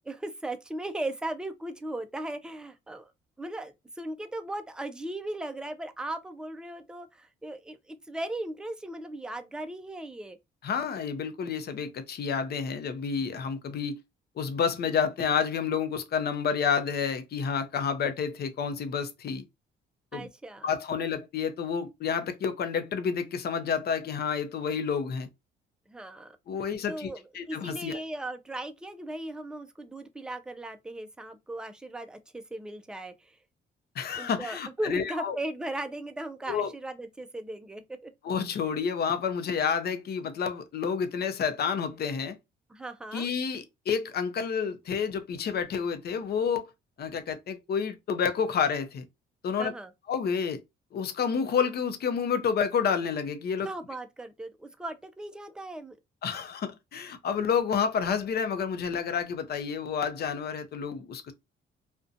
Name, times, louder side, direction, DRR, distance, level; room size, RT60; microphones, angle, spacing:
voice 1, 0.1-3.1 3.4-10.4 20.1-20.7 25.9-26.4 26.9-33.4 34.2-38.1 42.7-43.3 49.6-49.9 53.6-56.0, right 1 dB, 5° right, 0.3 m, -37 dB
voice 2, 10.6-14.0 14.4-19.4 20.1-20.3 20.6-25.3 26.5-27.1 27.3-28.0 34.0-35.4 36.5-36.7 38.2-42.4 43.1-46.7 47.0-49.0 49.4-49.7 50.1-50.6 50.9-53.7 56.2-61.3, left 6 dB, 55° left, 0.5 m, -29 dB
2.5 x 2.2 x 2.4 m
cardioid pair, 90°, 20 cm